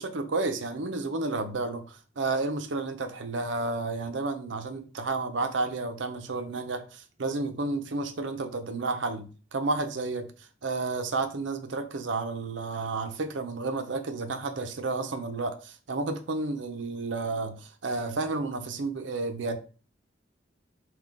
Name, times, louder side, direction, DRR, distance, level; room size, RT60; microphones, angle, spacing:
voice 1, 0.0-10.3 10.6-19.6, right 3 dB, 80° right, 0.7 m, -31 dB
6.0 x 2.3 x 3.6 m
head